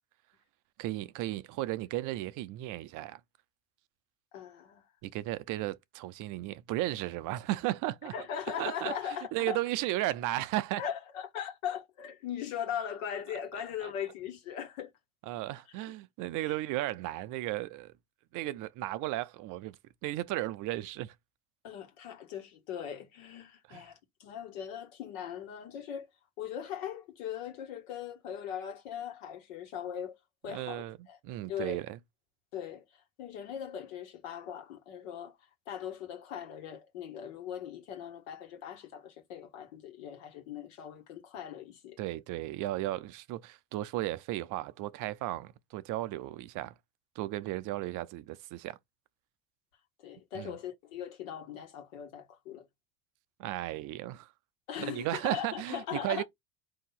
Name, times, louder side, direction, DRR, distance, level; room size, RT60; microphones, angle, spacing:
voice 1, 0.8-3.2 5.0-8.1 8.6-8.9 9.3-10.8 13.8-13.9 15.3-17.9 18.3-19.8 20.0-21.1 23.7-23.8 30.5-31.0 31.2-32.0 42.0-46.7 47.2-48.8 50.3-50.6 53.4-54.3 54.8-56.2, right 16 dB, 50° right, 0.6 m, -35 dB
voice 2, 4.3-4.8 8.1-9.6 10.8-14.9 16.4-16.6 21.6-26.1 26.4-30.2 30.4-31.2 31.5-31.8 32.5-32.8 33.2-35.4 35.7-42.0 50.0-52.7 54.7-56.2, left 9 dB, 75° left, 1.5 m, -40 dB
4.3 x 2.8 x 4.0 m
hypercardioid pair, 75°, 39 cm